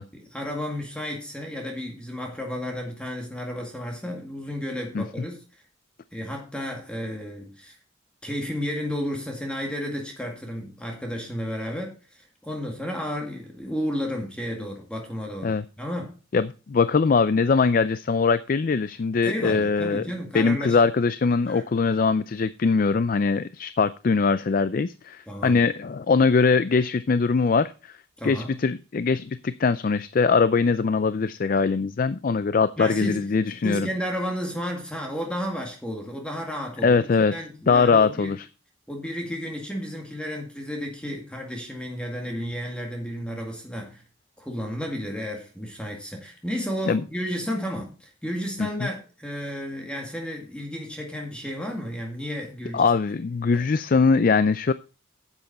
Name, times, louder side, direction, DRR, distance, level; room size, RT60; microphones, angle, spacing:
voice 1, 0.1-5.4 6.1-7.8 8.2-16.2 19.2-20.8 21.4-21.7 25.3-25.6 28.2-28.5 32.8-33.3 33.6-37.0 37.3-38.4 38.9-44.0 44.4-52.9 53.5-53.7, equal, 5° left, 2.0 m, -32 dB
voice 2, 16.3-20.0 20.3-27.9 28.2-33.9 36.8-37.3 37.7-38.5 46.9-47.0 48.6-48.9 52.7-54.7, left 4 dB, 45° left, 0.4 m, -22 dB
10.5 x 8.2 x 4.1 m
head